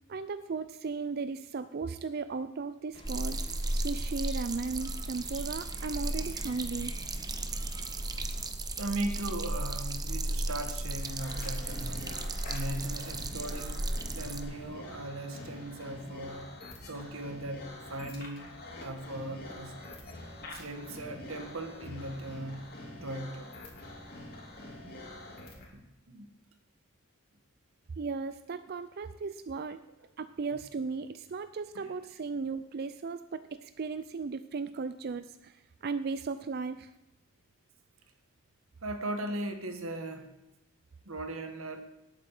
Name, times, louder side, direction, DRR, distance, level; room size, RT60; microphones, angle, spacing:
voice 1, 0.1-3.4 3.7-7.0 28.0-29.8 30.2-36.9, right 4 dB, 50° right, 12 dB, 0.4 m, -36 dB
sound 1, 2.9-8.5, left 1 dB, 25° left, 1.2 m, -52 dB
sound 2, 3.0-14.4, right 2 dB, 20° right, 0.8 m, -35 dB
voice 2, 8.8-12.2 12.5-13.8 14.1-16.5 16.9-18.5 18.8-19.7 20.5-22.7 23.0-23.5 25.7-26.3 31.7-31.9 38.8-40.3 41.0-41.8, right 1 dB, 90° right, 7 dB, 1.7 m, -38 dB
sound 3, 10.9-25.7, left 1 dB, 50° left, 3.2 m, -46 dB
19.0 x 8.3 x 4.9 m, 0.97 s
head